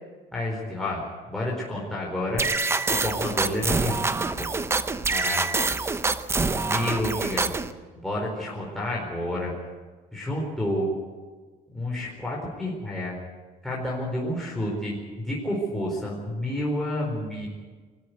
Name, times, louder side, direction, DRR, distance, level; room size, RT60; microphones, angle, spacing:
voice 1, 0.3-2.5 3.0-4.5 5.0-5.4 6.6-7.5 7.9-9.5 10.1-10.9 11.7-13.2 13.6-17.5, left 1 dB, ahead, -4 dB, 4.4 m, -30 dB
sound 1, 2.4-7.7, right 3 dB, 15° right, 0.8 m, -26 dB
23.5 x 13.5 x 9.4 m, 1.4 s
cardioid pair, 155°, 15 cm